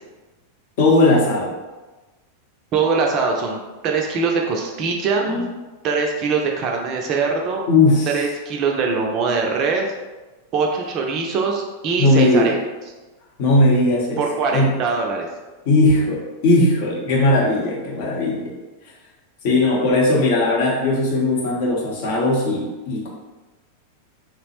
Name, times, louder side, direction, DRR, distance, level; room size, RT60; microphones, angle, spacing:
voice 1, 0.8-1.6 5.2-5.5 7.7-8.2 12.0-12.5 13.4-14.2 14.5-14.7 15.7-18.5 19.4-23.1, left 2 dB, 50° left, -3 dB, 0.7 m, -18 dB
voice 2, 2.7-3.6 3.8-5.3 5.8-7.6 8.1-9.9 10.5-12.6 14.2-15.3, right 4 dB, 35° right, 1 dB, 0.4 m, -22 dB
2.9 x 2.0 x 2.9 m, 1.2 s
figure-of-eight pair, 90°, 0 cm